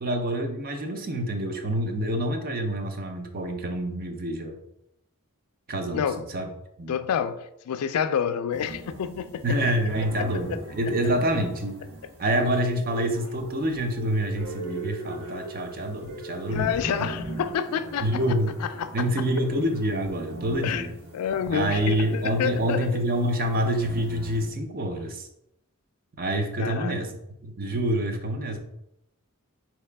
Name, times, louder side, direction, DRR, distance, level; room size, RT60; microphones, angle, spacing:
voice 1, 0.0-4.6 5.7-6.5 6.8-7.0 9.4-11.8 12.2-16.8 18.0-18.5 18.9-20.9 21.5-25.3 26.2-27.1 27.4-28.6, right 1 dB, 45° right, 0.6 m, -27 dB
voice 2, 6.9-9.6 10.2-10.6 16.5-18.2 18.6-18.9 20.6-20.9 21.1-23.0 26.6-27.1, left 8 dB, 85° left, 0.3 m, -28 dB
sound 1, 8.5-24.5, right 2 dB, 75° right, 1.3 m, -40 dB
4.7 x 2.9 x 3.3 m
head